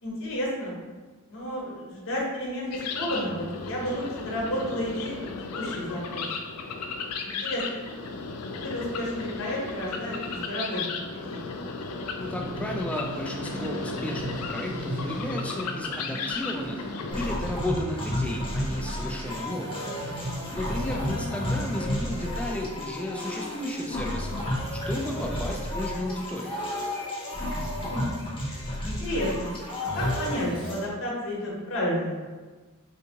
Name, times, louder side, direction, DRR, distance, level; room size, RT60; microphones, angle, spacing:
voice 1, 0.0-0.7 1.3-5.2 5.5-6.3 7.2-7.6 8.6-11.4 20.7-21.3 27.9-28.1 28.8-29.5 29.8-32.3, equal, 65° left, -4 dB, 1.0 m, -31 dB
sound 1, 2.7-17.4, left 4 dB, 80° left, 0.4 m, -35 dB
voice 2, 12.2-16.8 17.1-19.8 20.5-24.3 24.9-26.6, left 1 dB, 5° left, 0 dB, 0.3 m, -33 dB
sound 2, 12.2-22.3, right 1 dB, 85° right, 0.5 m, -39 dB
sound 3, 17.1-30.8, left 1 dB, 25° left, 0.7 m, -32 dB
3.4 x 2.7 x 2.8 m, 1.3 s
head